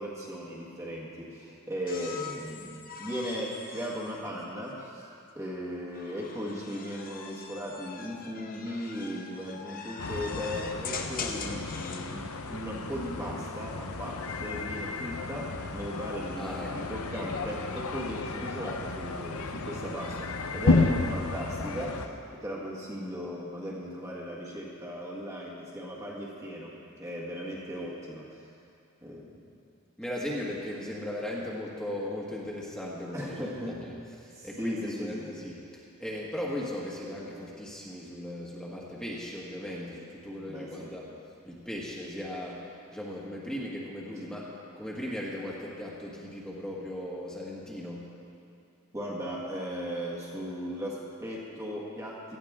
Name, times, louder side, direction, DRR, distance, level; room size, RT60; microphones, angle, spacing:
voice 1, 0.0-5.1 5.3-22.1 22.4-28.5 29.0-29.4 33.1-33.8 34.3-35.4 40.4-40.9 48.9-52.4, equal, 15° right, -5 dB, 1.6 m, -37 dB
sound 1, 1.9-5.1 5.9-12.1 13.6-14.1, left 5 dB, 40° left, 0.9 m, -42 dB
sound 2, 10.0-22.1, left 3 dB, 80° left, 0.8 m, -32 dB
voice 2, 16.4-16.8 30.0-33.5 33.8-33.9 34.2-41.1 41.5-42.6 42.9-48.1, left 1 dB, 5° left, -5 dB, 1.6 m, -37 dB
17.5 x 13.5 x 3.7 m, 2.5 s
head